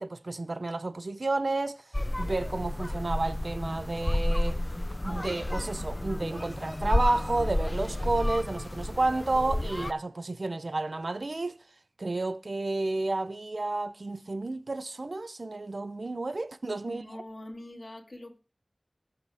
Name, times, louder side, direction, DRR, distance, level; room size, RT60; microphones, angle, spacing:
voice 1, 0.0-1.8 2.2-4.6 5.0-11.6 12.0-17.0, right 2 dB, 75° right, 0.7 m, -31 dB
sound 1, 1.9-9.9, left 1 dB, 35° left, 0.6 m, -31 dB
voice 2, 16.8-18.4, left 1 dB, 60° left, 2.4 m, -43 dB
20.5 x 7.8 x 3.5 m
wide cardioid pair, 55°, 0 cm